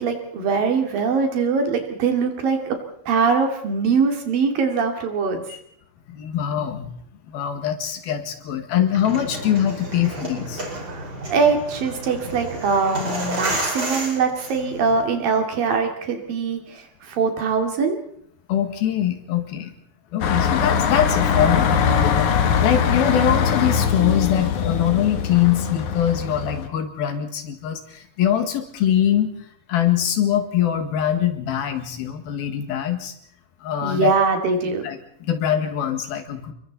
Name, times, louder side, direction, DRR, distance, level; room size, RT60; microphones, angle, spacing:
voice 1, 0.0-2.8 3.1-5.4 10.9-18.0 33.8-34.8, right 5 dB, 65° right, 4 dB, 4.2 m, -22 dB
voice 2, 6.1-6.9 7.3-10.6 18.5-19.7 20.1-29.3 29.7-33.1 33.6-34.1 34.8-36.5, left 10 dB, 80° left, 7 dB, 3.7 m, -23 dB
sound 1, 8.8-15.0, right 1 dB, 25° right, 5.2 m, -31 dB
sound 2, 20.2-26.7, left 7 dB, 60° left, 2.6 m, -21 dB
28.5 x 23.0 x 4.1 m, 0.65 s
omnidirectional pair, 4.3 m